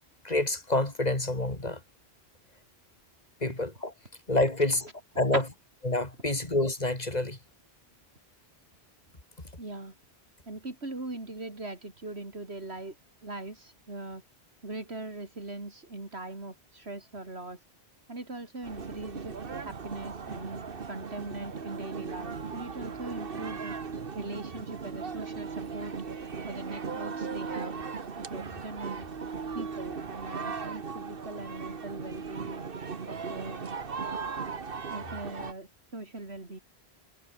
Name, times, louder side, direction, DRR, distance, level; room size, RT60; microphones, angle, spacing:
voice 1, 0.2-1.8 3.4-3.9 4.3-4.9 5.2-5.4 5.9-7.4, left 2 dB, 40° left, 3.6 m, -27 dB
voice 2, 9.6-10.0 10.5-13.0 13.2-14.2 14.6-17.6 18.1-19.3 19.6-20.6 20.9-23.8 24.1-26.0 26.5-27.9 28.1-29.1 29.5-32.7 33.1-33.6 34.9-36.6, right 2 dB, 80° right, 4.2 m, -40 dB
sound 1, 18.6-35.5, right 5 dB, 60° right, 1.6 m, -38 dB
omnidirectional pair, 1.1 m